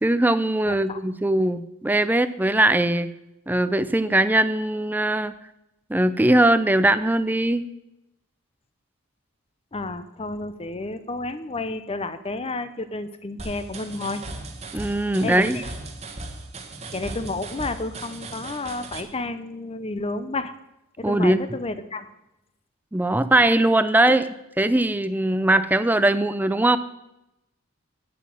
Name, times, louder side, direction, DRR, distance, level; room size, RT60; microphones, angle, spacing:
voice 1, 0.0-3.1 3.5-5.3 5.9-7.7 14.7-15.6 21.0-21.4 22.9-26.8, right 1 dB, 10° right, 13 dB, 0.4 m, -20 dB
voice 2, 0.6-1.0 9.7-14.2 15.2-15.6 16.9-20.5 21.0-22.1, left 2 dB, 25° left, 12 dB, 0.7 m, -31 dB
sound 1, 13.4-19.0, right 2 dB, 30° right, 1.3 m, -37 dB
9.3 x 8.3 x 7.6 m, 0.89 s
head